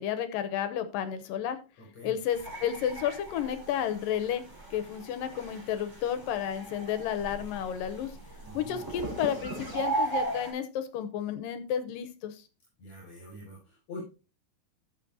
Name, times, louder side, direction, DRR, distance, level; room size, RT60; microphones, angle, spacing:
voice 1, 0.0-1.6 2.0-4.4 4.7-8.1 8.5-12.3, left 9 dB, 85° left, 10 dB, 2.7 m, -32 dB
voice 2, 1.8-2.2 8.4-8.9 12.8-14.0, left 1 dB, 55° left, -4 dB, 7.3 m, -44 dB
sound 1, 2.3-10.5, right 2 dB, 5° right, 3.5 m, -37 dB
14.0 x 7.2 x 2.8 m, 0.31 s
omnidirectional pair, 3.9 m